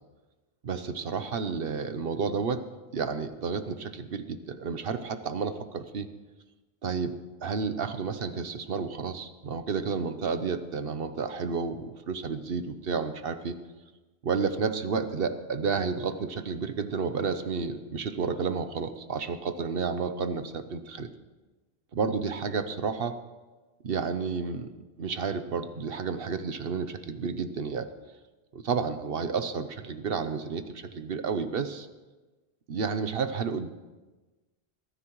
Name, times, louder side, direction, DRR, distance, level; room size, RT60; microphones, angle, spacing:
voice 1, 0.6-2.6 2.9-6.1 6.8-13.6 14.2-21.1 21.9-23.2 23.8-24.7 25.0-27.9 28.5-31.9 32.7-33.7, right 5 dB, 65° right, 10 dB, 1.0 m, -31 dB
21.0 x 13.5 x 3.1 m, 1.2 s
omnidirectional pair, 1.1 m